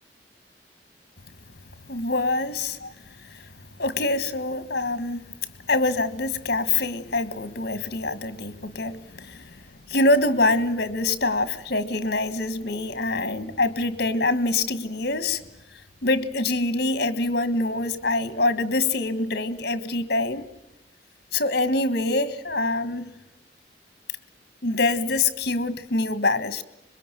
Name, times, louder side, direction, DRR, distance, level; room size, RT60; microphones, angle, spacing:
voice 1, 1.9-2.9 3.3-3.4 3.8-5.3 5.7-9.6 9.9-15.4 16.0-20.5 21.3-23.1 24.6-26.6, left 2 dB, 60° left, 1.6 m, -25 dB
26.0 x 22.0 x 9.3 m
head